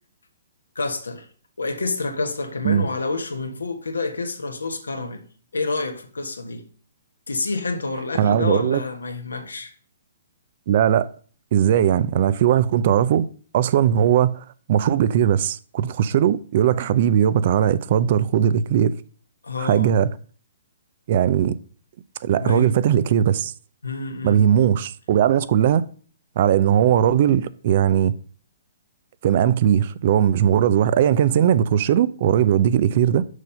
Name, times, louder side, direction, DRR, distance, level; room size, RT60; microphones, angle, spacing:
voice 1, 0.7-1.3 1.6-5.2 5.5-6.6 7.3-9.7 19.4-19.9 22.4-22.7 23.8-24.5, left 3 dB, 85° left, 1.4 m, -28 dB
voice 2, 8.2-8.8 10.7-11.1 11.5-13.3 13.5-14.4 14.7-18.9 19.6-20.1 21.1-21.6 22.2-23.5 24.2-25.9 26.4-28.2 29.2-33.2, right 9 dB, 50° right, 0.5 m, -19 dB
6.4 x 5.6 x 5.2 m
hypercardioid pair, 130°, 0 cm